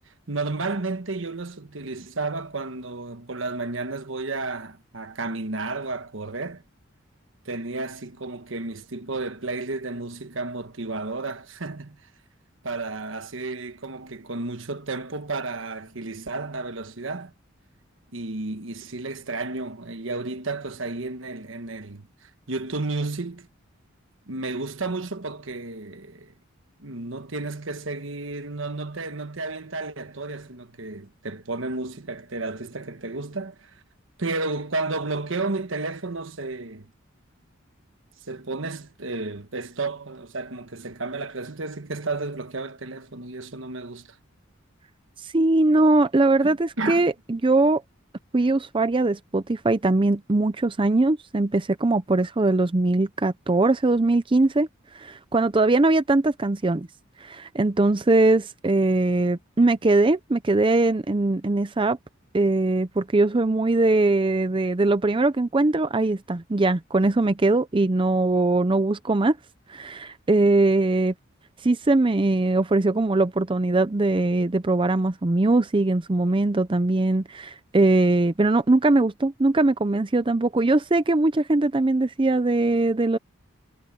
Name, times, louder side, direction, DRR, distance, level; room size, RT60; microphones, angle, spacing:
voice 1, 0.3-6.6 7.4-12.0 12.6-17.3 18.1-23.5 24.3-26.3 26.8-33.8 34.2-36.9 38.3-44.2 46.4-47.1, right 3 dB, 70° right, 1.3 m, -32 dB
voice 2, 45.2-47.8 48.3-54.7 54.9-56.9 57.2-62.0 62.3-69.4 69.7-71.1 71.6-83.2, right 2 dB, 25° right, 0.5 m, -21 dB
head